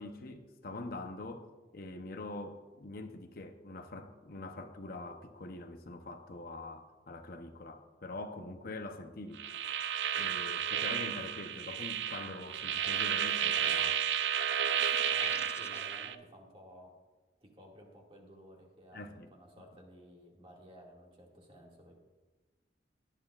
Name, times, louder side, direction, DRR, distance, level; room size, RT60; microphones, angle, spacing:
voice 1, 0.0-9.4 10.1-14.1 18.9-19.3, left 2 dB, 55° left, 6 dB, 0.8 m, -44 dB
sound 1, 9.4-16.1, right 9 dB, 85° right, 0.5 m, -32 dB
sound 2, 14.6-16.0, left 4 dB, 15° left, 0.4 m, -47 dB
voice 2, 15.1-16.9 17.4-22.0, equal, 30° right, -1 dB, 2.1 m, -54 dB
17.5 x 11.0 x 2.4 m, 1.2 s
head